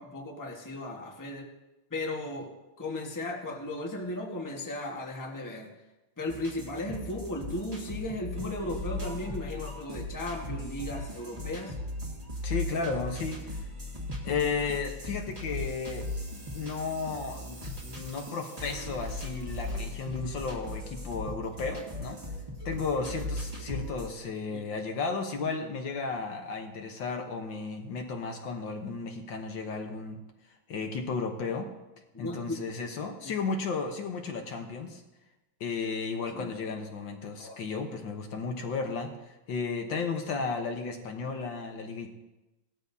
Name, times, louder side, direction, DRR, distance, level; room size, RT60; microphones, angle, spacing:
voice 1, 0.0-1.4 1.9-5.7 6.2-11.8 24.5-24.6 32.1-32.6 33.2-33.3 36.3-36.5 37.4-37.6, left 1 dB, 10° left, 0 dB, 1.2 m, -36 dB
sound 1, 6.3-24.1, left 1 dB, 20° right, 1.7 m, -38 dB
voice 2, 12.4-13.5 14.2-16.1 16.5-22.2 22.7-30.2 30.7-31.7 32.2-35.0 35.6-42.1, left 4 dB, 65° left, 3 dB, 1.7 m, -34 dB
sound 2, 15.2-19.8, right 3 dB, 90° right, 3.9 m, -52 dB
18.0 x 13.0 x 2.7 m, 1.0 s
omnidirectional pair, 2.3 m